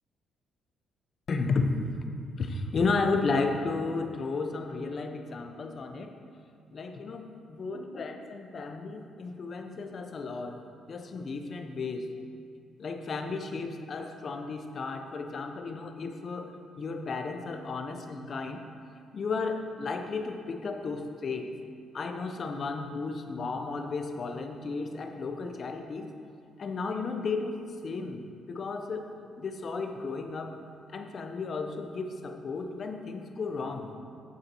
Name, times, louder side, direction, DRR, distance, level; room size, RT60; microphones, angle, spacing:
voice 1, 1.3-1.7 2.4-6.1 6.7-10.6 10.9-12.1 12.8-18.6 19.1-21.5 21.9-26.1 26.6-29.1 29.4-30.6 30.9-33.9, left 4 dB, 50° left, 5 dB, 0.9 m, -33 dB
8.6 x 7.2 x 4.6 m, 2.3 s
cardioid pair, 90°, 0 cm